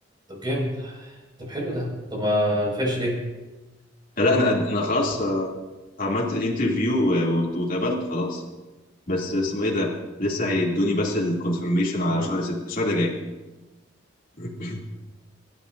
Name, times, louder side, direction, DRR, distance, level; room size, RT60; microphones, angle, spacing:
voice 1, 0.3-3.2 12.1-12.3, equal, 25° right, -2 dB, 5.7 m, -27 dB
voice 2, 4.2-5.5 6.0-8.4 9.1-9.9 10.2-13.1 14.4-14.8, left 1 dB, 45° left, -4 dB, 2.8 m, -24 dB
26.5 x 12.5 x 2.7 m, 1.1 s
head